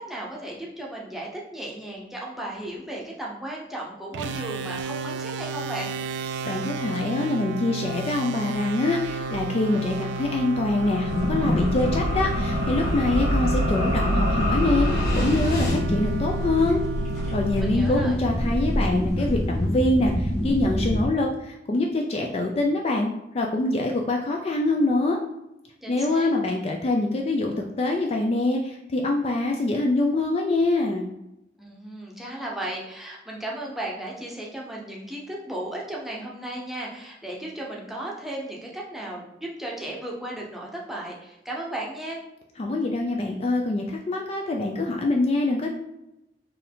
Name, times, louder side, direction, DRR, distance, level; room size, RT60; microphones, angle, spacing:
voice 1, 0.0-5.9 17.6-18.2 25.8-26.3 31.6-42.2, right 1 dB, ahead, -4 dB, 0.8 m, -35 dB
sound 1, 4.1-18.7, right 2 dB, 80° right, 0.3 m, -33 dB
voice 2, 6.5-16.8 17.3-25.2 25.9-31.1 42.6-45.7, left 2 dB, 35° left, 1 dB, 0.4 m, -24 dB
sound 2, 8.0-15.8, left 1 dB, 55° left, 1.5 m, -28 dB
sound 3, 11.0-21.0, equal, 15° left, 1.5 m, -27 dB
4.5 x 2.6 x 3.6 m, 0.88 s
head